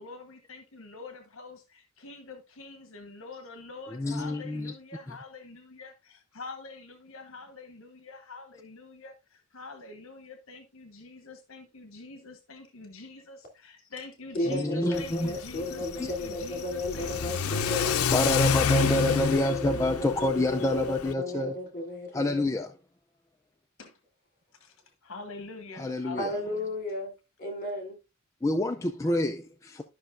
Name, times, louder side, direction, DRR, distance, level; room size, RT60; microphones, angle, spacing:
voice 1, 0.0-17.9 23.8-24.0 24.6-24.8 25.0-26.7, left 3 dB, 65° left, 1.2 m, -45 dB
voice 2, 3.9-4.7 14.5-15.3 16.0-16.1 18.1-21.5 22.1-22.7 25.8-26.4 28.4-29.8, left 1 dB, 15° left, 0.4 m, -27 dB
voice 3, 14.3-18.0 18.8-22.4 26.2-27.1 27.4-28.0, left 1 dB, 40° left, 2.9 m, -34 dB
Car / Accelerating revving vroom, 14.9-21.1, left 6 dB, 80° left, 0.6 m, -29 dB
12.5 x 5.7 x 2.5 m
head